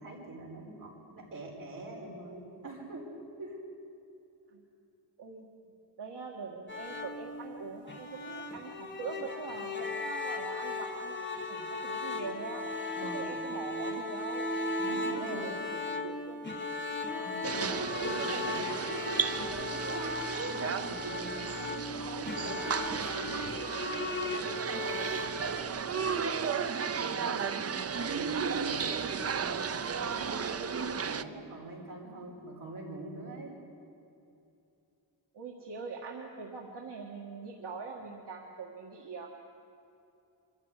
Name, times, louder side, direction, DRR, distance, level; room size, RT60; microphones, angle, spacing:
voice 1, 0.0-3.1 3.4-3.6 13.0-13.3 14.8-15.5 17.2-20.2 20.5-33.6, right 1 dB, 50° right, -2 dB, 5.1 m, -43 dB
voice 2, 6.0-12.7 13.0-14.5 14.9-16.7 35.3-39.3, right 5 dB, 75° right, -1 dB, 2.0 m, -43 dB
sound 1, 6.7-25.6, left 2 dB, 25° left, 1.8 m, -37 dB
sound 2, 17.4-31.2, right 6 dB, 35° right, 0.6 m, -34 dB
24.5 x 14.5 x 9.9 m, 2.7 s
wide cardioid pair, 180°, 41 cm